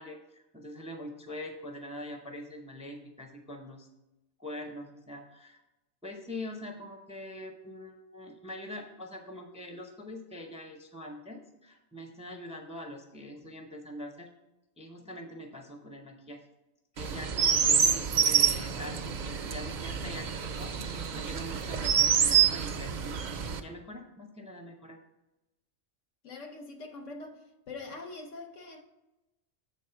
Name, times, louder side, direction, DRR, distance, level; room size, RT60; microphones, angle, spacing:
voice 1, 0.0-3.9 4.4-5.6 6.0-14.3 14.8-16.4 16.9-25.0, left 1 dB, 10° right, 0.5 m, -43 dB
Chirp tweet, 17.0-23.6, right 8 dB, 55° right, 0.5 m, -27 dB
voice 2, 26.2-27.4 27.7-28.8, left 3 dB, 85° left, 1.3 m, -43 dB
7.1 x 4.2 x 5.7 m
omnidirectional pair, 1.2 m